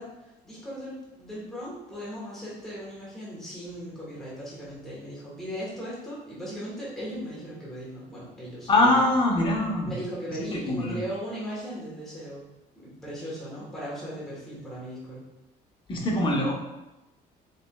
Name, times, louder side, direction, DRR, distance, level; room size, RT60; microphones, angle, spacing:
voice 1, 0.0-9.0 9.8-12.4 12.8-15.2, equal, ahead, -8 dB, 1.4 m, -37 dB
voice 2, 8.7-9.9 10.3-11.0 15.9-16.5, left 2 dB, 30° left, -2 dB, 1.0 m, -23 dB
5.0 x 3.4 x 2.4 m, 1.0 s
cardioid pair, 110°, 17 cm